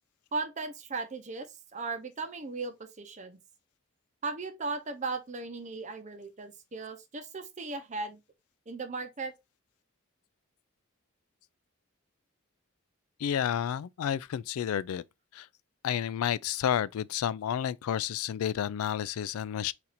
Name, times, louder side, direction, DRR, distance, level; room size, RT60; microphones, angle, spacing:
voice 1, 0.3-3.4 4.2-8.2 8.7-9.3, right 3 dB, 35° right, 0.6 m, -37 dB
voice 2, 13.2-15.0 15.3-15.5 15.8-19.7, left 9 dB, 90° left, 0.3 m, -30 dB
4.2 x 2.5 x 4.1 m
head